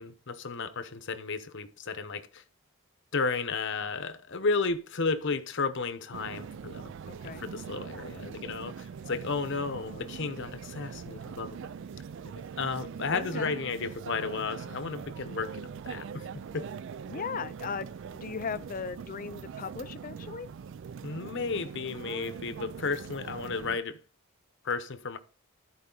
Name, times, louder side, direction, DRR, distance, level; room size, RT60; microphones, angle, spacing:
voice 1, 0.0-2.4 3.1-6.9 7.4-11.6 12.6-16.3 16.5-16.7 21.0-24.0 24.6-25.2, left 4 dB, 55° left, 0.9 m, -33 dB
sound 1, 6.1-23.8, right 6 dB, 55° right, 0.3 m, -42 dB
voice 2, 7.1-7.4 9.6-10.2 13.1-13.5 17.1-20.5, left 5 dB, 40° left, 0.5 m, -38 dB
13.5 x 4.7 x 3.9 m
head